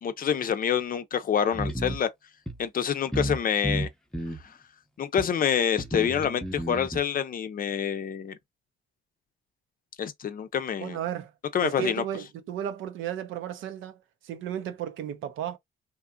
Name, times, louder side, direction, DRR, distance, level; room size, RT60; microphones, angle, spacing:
voice 1, 0.0-2.1 2.6-3.9 5.0-8.4 10.0-11.0 11.5-12.0, left 8 dB, 45° left, 0.5 m, -27 dB
sound 1, 1.5-2.0 2.5-2.6 3.1-3.4 3.6-4.4 5.2-5.3 5.8-7.0, right 1 dB, 5° left, 0.6 m, -32 dB
voice 2, 10.8-11.3 11.6-15.6, right 10 dB, 80° right, 0.6 m, -34 dB
2.9 x 2.5 x 2.2 m
cardioid pair, 90°, 20 cm